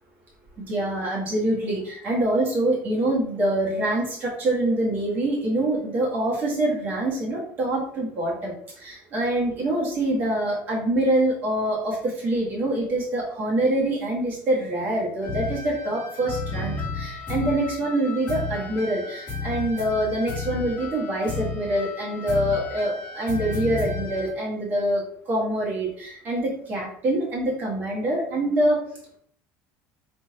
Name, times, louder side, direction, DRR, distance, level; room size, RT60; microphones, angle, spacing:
voice 1, 0.7-28.8, right 1 dB, 35° right, -3 dB, 1.5 m, -25 dB
sound 1, 15.2-24.3, left 3 dB, 40° left, 1.4 m, -33 dB
3.4 x 2.7 x 4.2 m, 0.62 s
cardioid pair, 175°, 5 cm